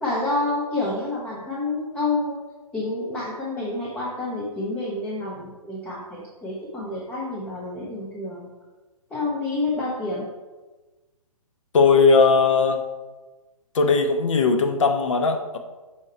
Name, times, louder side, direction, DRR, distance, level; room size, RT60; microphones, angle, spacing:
voice 1, 0.0-2.4 2.7-8.5 9.1-10.3, left 2 dB, 5° left, -6 dB, 0.5 m, -28 dB
voice 2, 11.7-12.8 13.7-15.6, left 4 dB, 55° left, 5 dB, 0.8 m, -18 dB
6.3 x 4.4 x 4.3 m, 1.2 s
figure-of-eight pair, 130°, 19 cm